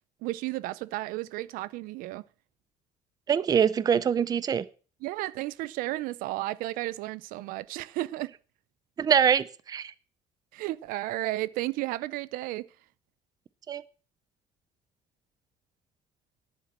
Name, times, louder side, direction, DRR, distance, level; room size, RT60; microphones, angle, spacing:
voice 1, 0.2-2.2 5.0-8.3 10.5-12.7, right 17 dB, 80° right, 0.5 m, -33 dB
voice 2, 3.3-4.7 9.0-9.9 13.7-13.8, right 8 dB, 25° right, 0.5 m, -24 dB
10.5 x 8.4 x 7.3 m
cardioid pair, 150°, 14 cm